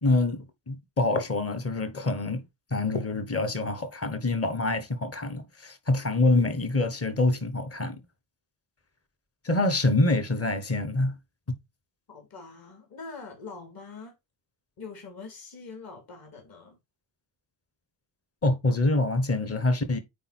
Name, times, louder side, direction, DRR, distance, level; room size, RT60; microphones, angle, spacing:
voice 1, 0.0-2.4 2.7-8.0 9.4-11.1 18.4-20.0, left 2 dB, 30° left, 1.2 m, -26 dB
voice 2, 12.1-14.1 14.8-16.8, left 4 dB, 45° left, 3.1 m, -43 dB
9.1 x 3.7 x 4.3 m
wide cardioid pair, 175°, 49 cm